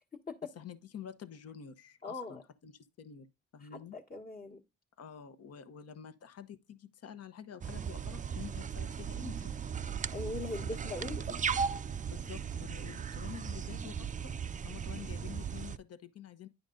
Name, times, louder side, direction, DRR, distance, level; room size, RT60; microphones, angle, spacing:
voice 1, 0.5-4.0 5.0-9.6 10.6-11.4 12.1-14.3 14.6-16.5, left 8 dB, 55° left, 1.1 m, -48 dB
voice 2, 2.0-2.4 3.6-4.6 10.1-11.4, left 2 dB, 30° left, 1.4 m, -41 dB
sound 1, 7.6-15.8, right 7 dB, 25° right, 0.4 m, -37 dB
10.5 x 5.1 x 3.8 m
cardioid pair, 90°, 30 cm